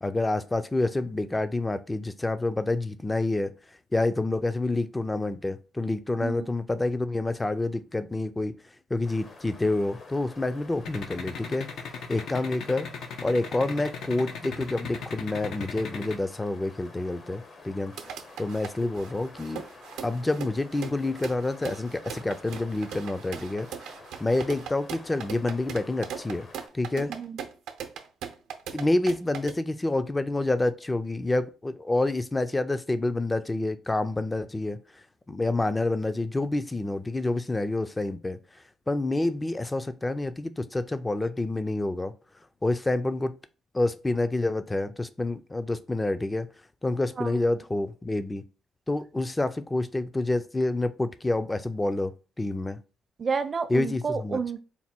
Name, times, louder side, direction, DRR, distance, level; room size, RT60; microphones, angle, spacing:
voice 1, 0.0-3.5 3.9-8.5 8.9-11.7 12.1-12.9 13.2-17.9 18.4-19.6 20.0-23.9 24.2-26.5 26.7-27.1 28.7-34.8 35.3-38.4 38.9-42.1 42.6-43.4 43.7-46.5 46.8-48.4 48.9-52.8 53.7-54.4, left 2 dB, 15° left, 0.4 m, -28 dB
sound 1, 9.0-26.7, left 3 dB, 50° left, 0.9 m, -49 dB
sound 2, 10.9-16.2, left 6 dB, 75° left, 0.6 m, -36 dB
sound 3, 17.9-29.5, right 8 dB, 90° right, 0.6 m, -39 dB
voice 2, 53.2-54.6, right 5 dB, 40° right, 0.5 m, -30 dB
4.2 x 2.2 x 4.3 m
cardioid pair, 90°, 0 cm